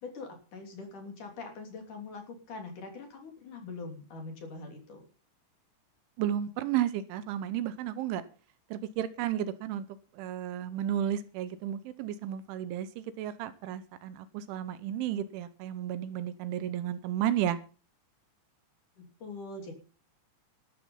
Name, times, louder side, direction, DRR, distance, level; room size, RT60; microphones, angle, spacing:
voice 1, 0.0-5.1 19.0-19.7, left 3 dB, 45° left, 4 dB, 4.1 m, -43 dB
voice 2, 6.2-8.2 8.7-9.8 10.1-17.6, right 11 dB, 80° right, 14 dB, 3.2 m, -33 dB
13.5 x 13.0 x 5.5 m, 0.37 s
omnidirectional pair, 5.7 m